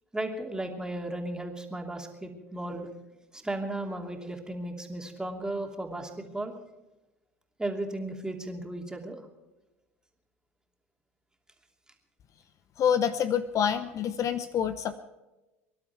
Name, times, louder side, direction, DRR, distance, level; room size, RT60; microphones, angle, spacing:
voice 1, 0.1-2.9 3.3-6.5 7.6-9.2, right 1 dB, 10° right, 2 dB, 2.9 m, -35 dB
voice 2, 12.8-14.9, left 8 dB, 45° left, 11 dB, 0.8 m, -27 dB
24.5 x 11.5 x 4.6 m, 1.0 s
hypercardioid pair, 75°, 8 cm